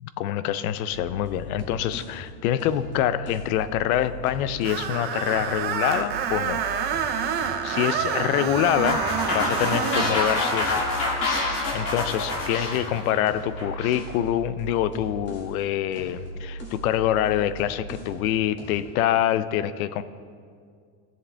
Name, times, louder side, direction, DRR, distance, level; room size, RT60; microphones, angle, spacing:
voice 1, 0.2-6.6 7.6-9.0 9.3-10.8 11.7-20.0, left 11 dB, 90° left, 14 dB, 0.6 m, -25 dB
sound 1, 0.9-4.9 5.3-7.6 7.9-15.6 15.9-18.3 18.6-18.9, right 1 dB, 25° left, 1.9 m, -39 dB
Screech, 4.6-10.2, right 8 dB, 25° right, 0.4 m, -28 dB
sound 2, 8.9-14.0, left 2 dB, 50° left, 2.5 m, -27 dB
16.5 x 7.7 x 3.3 m, 2.1 s
cardioid pair, 165°, 42 cm